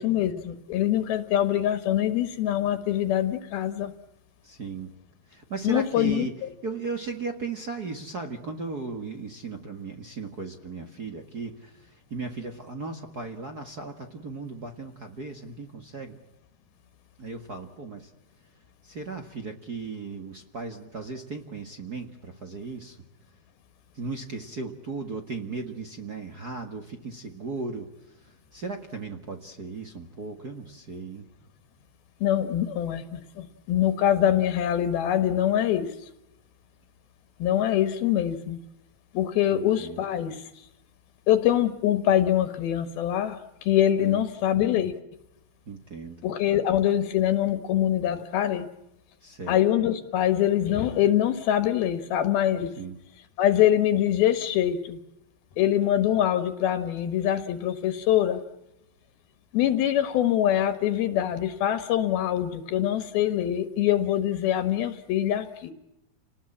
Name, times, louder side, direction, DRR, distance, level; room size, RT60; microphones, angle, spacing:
voice 1, 0.0-3.9 5.6-6.5 32.2-36.0 37.4-38.6 39.1-40.7 41.3-44.9 46.2-48.7 49.5-52.7 53.4-55.0 55.6-58.4 59.5-65.7, left 11 dB, 75° left, 10 dB, 3.1 m, -24 dB
voice 2, 4.4-4.9 5.3-6.3 6.6-16.2 17.2-18.1 18.8-23.0 23.9-31.3 39.5-40.0 44.0-44.2 45.7-46.2 49.2-49.6 52.8-53.0, right 4 dB, 60° right, 4 dB, 1.0 m, -36 dB
30.0 x 19.5 x 8.7 m, 0.89 s
omnidirectional pair, 4.6 m